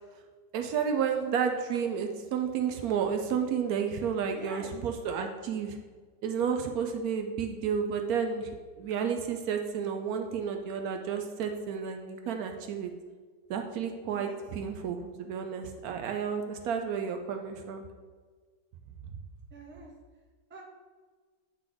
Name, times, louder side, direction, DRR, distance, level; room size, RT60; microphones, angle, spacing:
voice 1, 0.5-5.8 6.2-12.9 13.5-17.8, right 7 dB, 70° right, 5 dB, 1.0 m, -31 dB
voice 2, 4.3-4.8 14.1-14.4 19.5-19.9 20.5-20.6, right 2 dB, 10° right, -2 dB, 0.6 m, -46 dB
8.2 x 3.2 x 3.9 m, 1.5 s
omnidirectional pair, 1.7 m